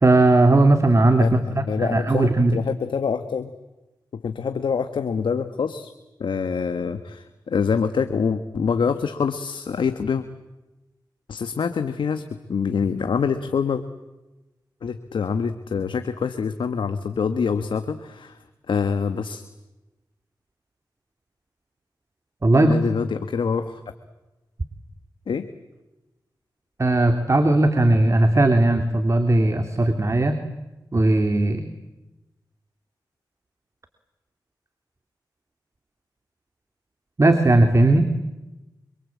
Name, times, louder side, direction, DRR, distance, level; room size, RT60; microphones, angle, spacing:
voice 1, 0.0-2.6 22.4-22.8 26.8-30.4 30.9-31.6 37.2-38.1, right 2 dB, 35° right, 7 dB, 2.7 m, -18 dB
voice 2, 1.2-3.5 4.2-5.9 6.2-10.2 11.3-12.2 12.5-13.8 14.8-18.4 18.7-19.4 22.5-23.8 25.3-25.5, left 6 dB, 85° left, 9 dB, 1.5 m, -25 dB
26.5 x 25.5 x 8.6 m, 1.0 s
cardioid pair, 65°, 8 cm